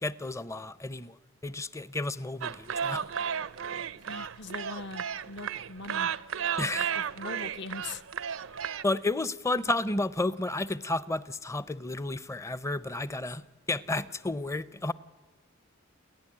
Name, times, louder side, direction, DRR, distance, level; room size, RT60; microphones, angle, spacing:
voice 1, 0.0-1.2 1.4-3.1 6.6-6.9 8.8-13.4 13.7-14.9, left 2 dB, 15° left, 0.6 m, -31 dB
sound 1, 2.4-8.8, right 7 dB, 90° right, 0.6 m, -33 dB
voice 2, 4.1-6.1 6.8-8.0, left 3 dB, 60° left, 1.0 m, -41 dB
30.0 x 11.0 x 9.9 m
head